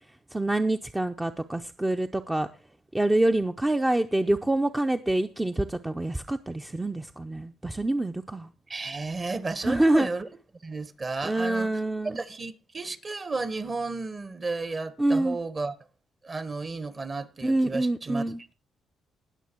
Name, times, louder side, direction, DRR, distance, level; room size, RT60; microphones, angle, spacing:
voice 1, 0.3-2.5 2.9-8.5 9.6-10.1 11.2-12.2 15.0-15.4 17.4-18.4, right 1 dB, 15° right, 0.6 m, -26 dB
voice 2, 8.7-10.3 10.6-15.8 16.2-18.2, right 3 dB, 35° right, 1.2 m, -33 dB
19.0 x 6.6 x 4.5 m
cardioid pair, 90°, 0 cm